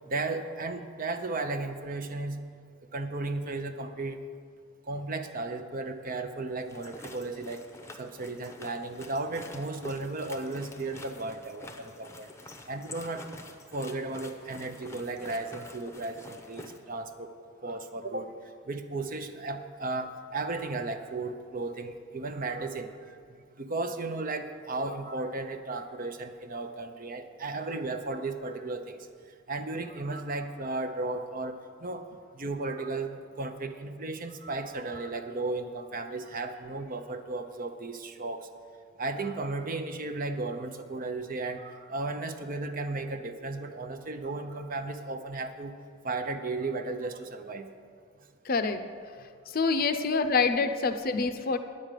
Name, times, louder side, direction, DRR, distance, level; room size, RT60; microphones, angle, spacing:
voice 1, 0.1-2.4 2.9-4.2 4.9-7.6 8.0-12.3 12.7-13.4 13.7-17.3 17.6-18.3 18.7-23.2 23.6-29.0 29.5-32.0 32.3-38.5 39.0-45.7 46.0-47.7 50.1-50.2, right 3 dB, 45° right, 8 dB, 0.7 m, -35 dB
sound 1, 6.6-16.8, left 2 dB, 15° left, 0.8 m, -47 dB
voice 2, 48.5-48.8 49.5-51.6, left 4 dB, 45° left, 9 dB, 0.6 m, -26 dB
10.0 x 6.6 x 9.1 m, 2.1 s
head